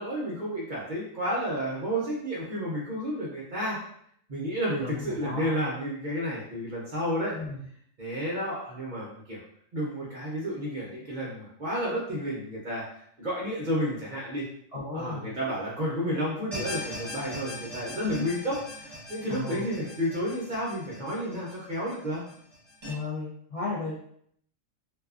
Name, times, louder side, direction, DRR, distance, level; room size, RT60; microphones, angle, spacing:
voice 1, 0.0-3.8 4.3-7.3 8.0-9.4 9.7-12.8 13.2-14.4 14.9-22.2, equal, 50° right, -6 dB, 0.6 m, -31 dB
voice 2, 4.8-5.5 7.3-7.6 14.7-15.4 18.0-18.2 19.3-19.7 22.8-24.0, left 3 dB, 60° left, -7 dB, 0.3 m, -34 dB
sound 1, 16.5-22.9, left 1 dB, 30° right, 1.0 m, -41 dB
2.6 x 2.3 x 2.3 m, 0.68 s
omnidirectional pair, 1.4 m